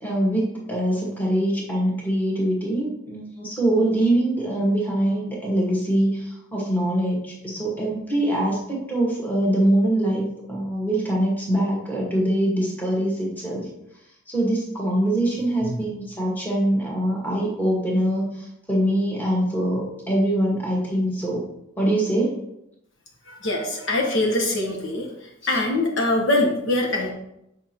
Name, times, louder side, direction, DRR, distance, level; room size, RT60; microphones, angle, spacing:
voice 1, 0.0-13.7 14.3-21.4 21.8-22.3, right 1 dB, 10° left, -4 dB, 1.5 m, -23 dB
voice 2, 23.3-25.1 25.4-27.1, left 2 dB, 60° left, -1 dB, 1.1 m, -23 dB
8.3 x 5.2 x 2.9 m, 0.83 s
head